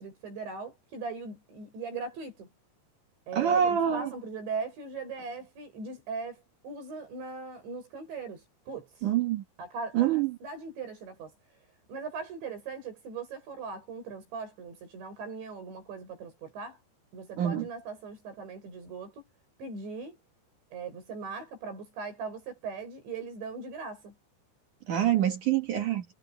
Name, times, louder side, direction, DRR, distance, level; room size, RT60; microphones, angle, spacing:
voice 1, 0.0-2.5 3.3-9.1 9.6-11.3 11.9-16.8 17.1-19.2 19.6-20.2 20.7-24.1, right 4 dB, 85° right, 10.5 m, -39 dB
voice 2, 3.3-4.1 9.0-9.4 9.9-10.3 17.4-17.7 24.9-26.0, right 10 dB, 55° right, 2.8 m, -25 dB
omnidirectional pair, 5.0 m